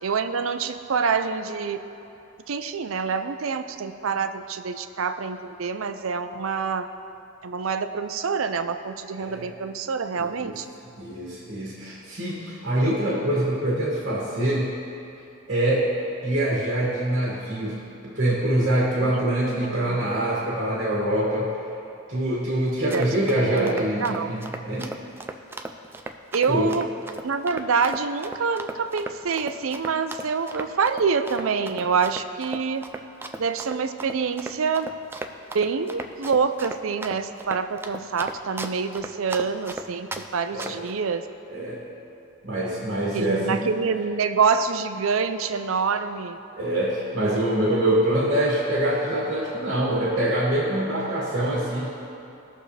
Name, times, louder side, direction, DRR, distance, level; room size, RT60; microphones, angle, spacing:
voice 1, 0.0-1.8 2.5-6.9 7.4-10.6 19.0-20.0 22.9-23.1 23.5-24.3 26.3-26.9 27.2-32.8 33.4-34.9 35.5-41.2 43.1-46.4 47.7-47.8, right 5 dB, 85° right, 9 dB, 0.5 m, -26 dB
voice 2, 9.2-9.5 10.2-10.6 11.0-14.7 15.5-15.9 16.2-21.5 22.1-24.9 26.5-26.7 40.5-40.8 41.5-41.8 42.4-43.7 46.5-51.9, right 1 dB, 55° right, -5 dB, 1.8 m, -25 dB
Run, 22.7-40.3 40.6-40.9, right 2 dB, 10° right, 0.3 m, -36 dB
19.0 x 6.5 x 3.3 m, 2.8 s
head